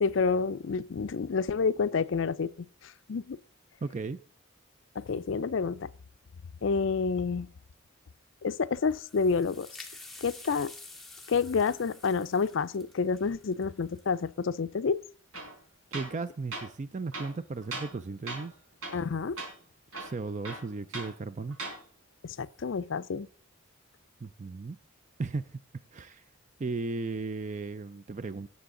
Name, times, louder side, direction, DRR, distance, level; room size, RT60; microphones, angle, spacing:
voice 1, 0.0-2.5 2.8-3.4 5.0-5.9 6.6-7.5 8.4-9.7 10.2-10.7 11.3-15.0 18.9-19.4 22.2-23.3, left 5 dB, 60° left, 0.4 m, -29 dB
voice 2, 3.8-4.2 15.9-18.5 20.0-21.6 24.2-24.8 25.2-25.6 25.9-26.2 26.6-28.5, right 3 dB, 35° right, 0.4 m, -35 dB
sound 1, 8.7-14.3, left 2 dB, ahead, 1.4 m, -49 dB
Tools, 15.3-15.5 15.9-16.2 16.5-16.7 17.1-18.0 18.3-18.5 18.8-19.1 19.4-19.5 19.9-21.1 21.5-21.8, right 2 dB, 80° right, 4.5 m, -39 dB
18.0 x 7.0 x 3.8 m
head